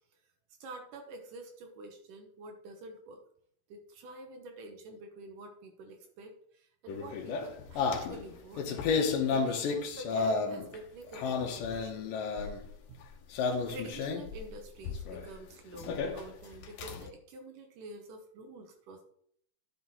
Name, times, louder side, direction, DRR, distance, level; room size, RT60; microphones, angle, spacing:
voice 1, 0.6-3.2 3.7-8.8 9.3-12.6 12.9-13.0 13.7-19.0, right 2 dB, 80° right, 3 dB, 2.6 m, -48 dB
sound 1, 6.9-10.8 11.1-12.7 13.3-14.4 14.8-15.3 15.7-17.1, left 5 dB, 90° left, 2.7 m, -32 dB
10.5 x 5.8 x 4.2 m, 0.66 s
omnidirectional pair, 3.8 m